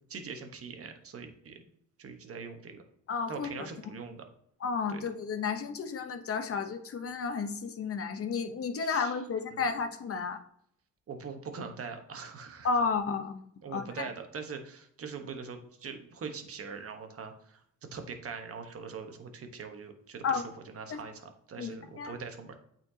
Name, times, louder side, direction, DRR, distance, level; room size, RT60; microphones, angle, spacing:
voice 1, 0.1-1.6 2.0-2.8 3.3-4.2 4.9-5.0 8.8-9.2 9.5-9.7 11.1-12.7 13.6-17.6 17.9-22.6, right 5 dB, 50° right, 6 dB, 1.2 m, -42 dB
voice 2, 3.1-3.5 4.6-10.4 12.6-13.4 13.7-13.8 20.2-20.5 20.9-21.0 21.6-22.1, left 5 dB, 50° left, 7 dB, 0.8 m, -32 dB
8.5 x 4.4 x 2.8 m, 0.69 s
cardioid pair, 90°, 30 cm